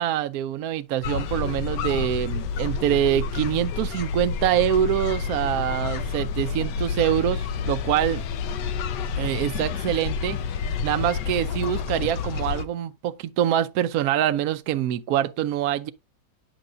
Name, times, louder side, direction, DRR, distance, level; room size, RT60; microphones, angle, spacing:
voice 1, 0.0-8.2 9.2-10.4 10.8-15.9, right 11 dB, 70° right, 0.9 m, -25 dB
sound 1, 1.0-12.6, left 6 dB, 70° left, 1.3 m, -29 dB
9.0 x 6.1 x 2.6 m
omnidirectional pair, 2.0 m